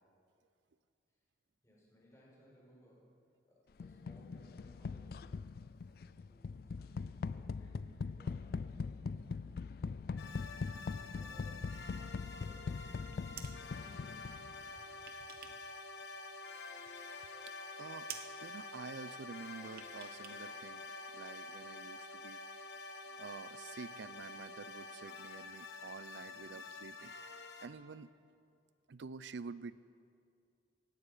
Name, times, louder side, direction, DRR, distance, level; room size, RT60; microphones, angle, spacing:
voice 1, 1.6-3.1 3.5-9.5 10.1-14.5 26.2-26.5, equal, 15° left, -5 dB, 4.8 m, -63 dB
sound 1, 3.8-14.7, left 4 dB, 55° left, 0.3 m, -42 dB
sound 2, 10.2-27.7, left 3 dB, 75° left, 1.2 m, -48 dB
sound 3, 13.0-13.6 14.6-15.7 16.0-16.9 17.3-17.4 17.7-17.8 18.1-18.4 19.7-20.4 20.7-20.8, right 8 dB, 55° right, 1.0 m, -51 dB
voice 2, 17.8-18.1 18.4-22.6 23.1-27.1 27.6-28.1 28.9-29.8, right 4 dB, 80° right, 16 dB, 0.5 m, -49 dB
18.0 x 15.5 x 5.0 m, 2.4 s
head